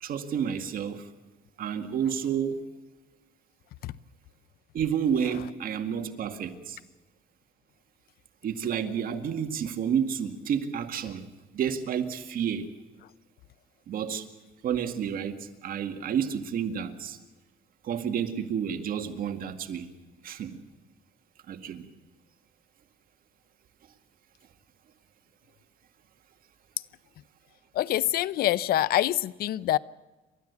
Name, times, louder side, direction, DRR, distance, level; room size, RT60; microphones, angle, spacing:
voice 1, 0.0-1.1 1.6-2.7 4.7-6.8 8.4-11.2 11.5-12.7 13.9-14.3 14.6-17.2 17.8-19.9 20.2-20.6 21.5-21.9, right 8 dB, 60° right, 7 dB, 2.1 m, -30 dB
voice 2, 27.7-29.8, left 13 dB, 65° left, 19 dB, 0.6 m, -25 dB
29.0 x 13.0 x 8.3 m, 1.2 s
cardioid pair, 110°, 17 cm